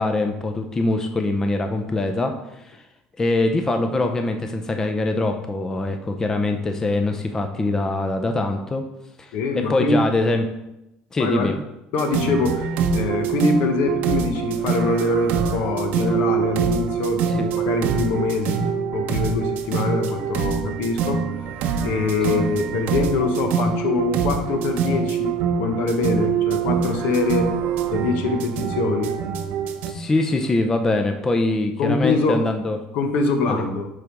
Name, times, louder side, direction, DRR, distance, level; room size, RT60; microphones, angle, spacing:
voice 1, 0.0-2.8 3.2-8.8 9.2-10.4 11.1-11.5 17.3-17.5 22.3-22.4 29.9-32.8 33.5-33.6, left 2 dB, 20° left, 5 dB, 0.6 m, -23 dB
voice 2, 9.3-10.0 11.2-11.5 11.9-17.2 17.6-18.6 18.9-21.2 21.8-27.5 27.9-29.1 31.8-32.4 32.9-33.9, left 3 dB, 70° left, 6 dB, 1.0 m, -24 dB
sound 1, 12.0-29.9, right 6 dB, 65° right, 0.8 m, -24 dB
7.6 x 3.5 x 5.2 m, 0.89 s
cardioid pair, 130°, 3 cm